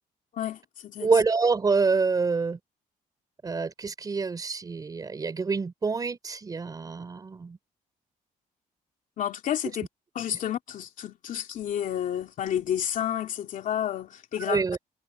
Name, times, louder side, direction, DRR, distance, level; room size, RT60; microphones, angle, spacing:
voice 1, 0.3-1.1 9.2-9.9 10.1-14.6, left 10 dB, 60° left, 2.8 m, -30 dB
voice 2, 1.0-2.6 3.4-7.6 14.5-14.8, right 4 dB, 25° right, 4.3 m, -26 dB
cardioid pair, 170°, 15 cm